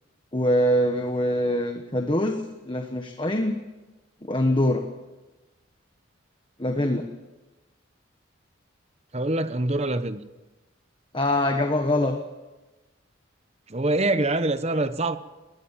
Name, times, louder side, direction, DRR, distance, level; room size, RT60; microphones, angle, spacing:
voice 1, 0.3-3.6 4.2-4.9 6.6-7.1 11.1-12.2, left 1 dB, 25° left, 5 dB, 1.3 m, -24 dB
voice 2, 9.1-10.2 13.7-15.2, right 2 dB, 30° right, 11 dB, 1.0 m, -24 dB
20.5 x 20.0 x 7.4 m, 1.1 s
head